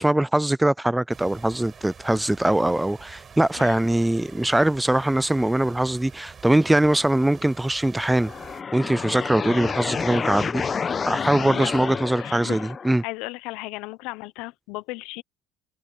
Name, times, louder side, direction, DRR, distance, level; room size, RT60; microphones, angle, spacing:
voice 1, 0.0-8.3 8.7-10.6 11.1-13.0, right 1 dB, 10° right, 0.4 m, -22 dB
sound 1, 1.1-8.6, right 6 dB, 35° right, 5.6 m, -46 dB
sound 2, 8.1-13.0, left 6 dB, 35° left, 1.0 m, -29 dB
voice 2, 12.2-12.6 13.0-15.2, left 22 dB, 75° left, 1.0 m, -35 dB
hypercardioid pair, 75°, 0 cm